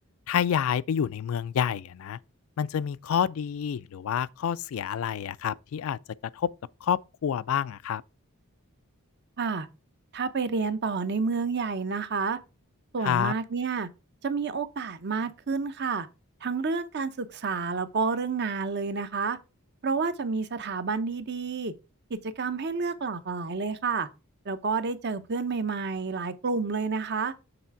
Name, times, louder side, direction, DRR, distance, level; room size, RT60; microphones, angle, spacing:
voice 1, 0.3-2.2 2.6-6.0 6.4-6.5 6.8-8.0 13.0-13.3, left 8 dB, 70° left, 0.3 m, -28 dB
voice 2, 10.1-12.4 12.9-13.9 14.2-16.1 16.4-19.4 19.8-21.7 22.1-24.1 24.5-27.3, right 4 dB, 50° right, 0.7 m, -29 dB
6.9 x 3.4 x 5.7 m
head